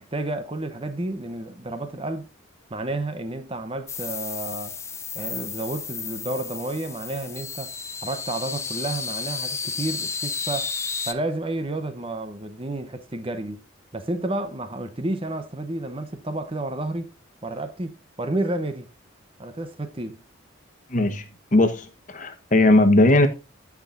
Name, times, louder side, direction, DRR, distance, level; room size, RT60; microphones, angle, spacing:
voice 1, 0.0-2.3 2.7-4.8 5.1-7.7 8.0-10.7 11.1-13.7 13.9-17.1 17.4-18.9 19.4-20.2, right 2 dB, 25° right, 0.8 m, -31 dB
sound 1, 3.9-11.1, left 5 dB, 15° left, 0.5 m, -32 dB
voice 2, 20.9-21.2 21.5-23.3, left 2 dB, 35° left, 1.1 m, -18 dB
15.5 x 6.0 x 2.5 m
head